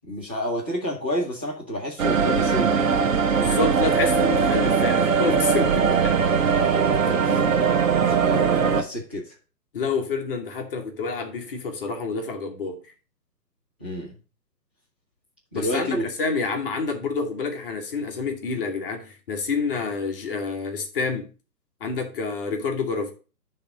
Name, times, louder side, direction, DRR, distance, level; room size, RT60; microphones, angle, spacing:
voice 1, 0.0-3.1 7.0-9.3 13.8-14.1 15.5-16.1, left 1 dB, 5° right, 0.5 m, -30 dB
sound 1, 2.0-8.8, right 6 dB, 50° right, 1.0 m, -20 dB
voice 2, 3.4-6.2 6.9-7.2 9.7-12.8 15.5-21.3 21.8-23.1, left 4 dB, 35° left, 1.3 m, -28 dB
10.0 x 3.4 x 6.0 m
figure-of-eight pair, 140°, 49 cm